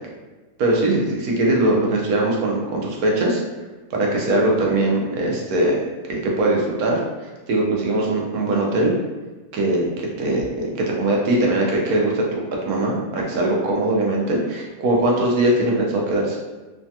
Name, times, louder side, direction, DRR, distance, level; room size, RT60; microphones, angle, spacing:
voice 1, 0.6-3.4 3.9-5.8 6.1-7.0 7.5-8.9 9.5-10.7 11.0-16.4, right 1 dB, 90° right, -2 dB, 1.2 m, -21 dB
3.2 x 2.2 x 2.7 m, 1.2 s
omnidirectional pair, 1.5 m